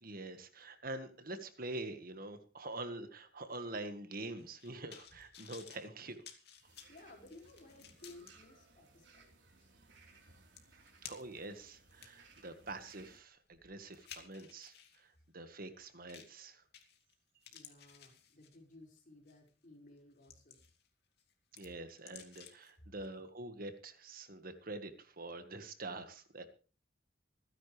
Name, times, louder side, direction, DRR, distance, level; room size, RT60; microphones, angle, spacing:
voice 1, 0.0-6.2 11.0-16.6 21.5-26.5, right 2 dB, 55° right, 9 dB, 1.7 m, -46 dB
sound 1, 4.4-8.3 8.9-9.0 10.1-10.2 10.6-11.5 11.9-15.0 16.1-16.4 16.7-17.1 17.4-18.7 19.3-19.5 20.0-20.9 21.2-22.7 23.0-23.1, left 8 dB, 65° left, 2.6 m, -55 dB
sound 2, 6.6-13.2, right 3 dB, 85° right, 3.9 m, -63 dB
voice 2, 6.9-9.7 17.5-20.6, left 2 dB, 50° left, 0 dB, 5.5 m, -58 dB
26.5 x 10.0 x 3.4 m, 0.37 s
head